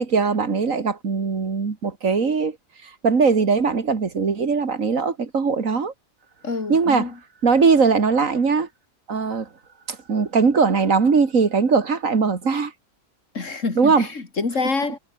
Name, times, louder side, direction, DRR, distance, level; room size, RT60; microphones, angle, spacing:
voice 1, 0.0-2.6 2.8-5.9 6.7-7.1 7.4-8.7 9.1-9.5 9.9-12.7 13.8-14.1, right 5 dB, 85° right, 2.6 m, -20 dB
voice 2, 6.4-7.1 13.3-15.0, left 4 dB, 70° left, 3.0 m, -26 dB
omnidirectional pair, 1.4 m